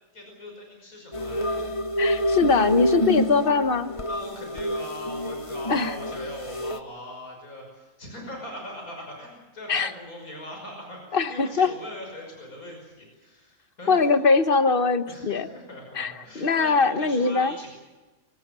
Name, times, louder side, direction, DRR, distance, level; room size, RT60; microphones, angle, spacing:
voice 1, 0.1-1.7 4.1-14.5 15.1-17.7, left 1 dB, 80° left, 1 dB, 6.2 m, -41 dB
sound 1, 1.1-6.8, equal, 25° left, 1.0 m, -28 dB
voice 2, 2.0-3.9 5.7-5.9 9.7-9.9 11.1-11.7 13.9-15.5 15.9-17.5, left 4 dB, 40° left, 10 dB, 1.3 m, -22 dB
24.5 x 18.5 x 7.5 m, 1.2 s
omnidirectional pair, 1.5 m